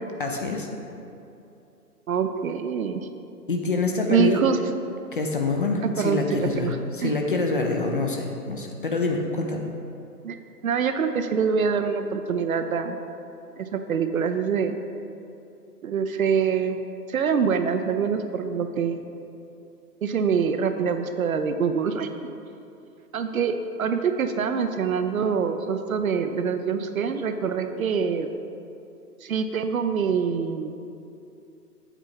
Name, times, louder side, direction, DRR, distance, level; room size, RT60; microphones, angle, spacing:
voice 1, 0.2-0.7 3.5-4.4 5.1-9.7, left 3 dB, 35° left, 2 dB, 0.5 m, -26 dB
voice 2, 2.1-3.1 4.1-4.6 5.8-6.8 7.0-7.1 10.2-10.4 10.6-13.0 13.6-14.7 15.8-16.8 17.1-19.0 20.0-22.1 23.1-28.3 29.2-30.7, right 6 dB, 60° right, 8 dB, 0.6 m, -25 dB
8.1 x 4.6 x 5.7 m, 2.7 s
figure-of-eight pair, 140°, 49 cm